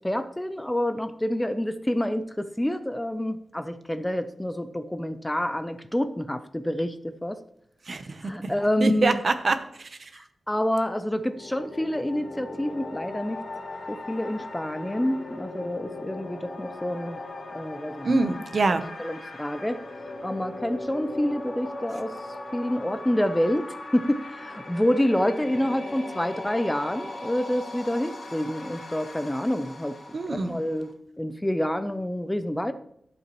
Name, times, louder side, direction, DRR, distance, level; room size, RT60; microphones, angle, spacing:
voice 1, 0.0-7.4 8.2-9.2 10.2-13.4 13.9-17.2 17.5-18.2 18.7-18.8 19.0-19.8 20.2-22.2 22.5-30.0 30.3-30.9 31.2-32.7, left 1 dB, 10° left, 11 dB, 0.4 m, -28 dB
voice 2, 7.9-8.5 8.8-10.1 18.0-18.8 30.1-30.6, right 3 dB, 45° right, 10 dB, 0.8 m, -25 dB
sound 1, 11.1-30.9, left 2 dB, 70° left, 2.4 m, -39 dB
12.0 x 7.7 x 3.0 m, 0.73 s
wide cardioid pair, 140°, 0 cm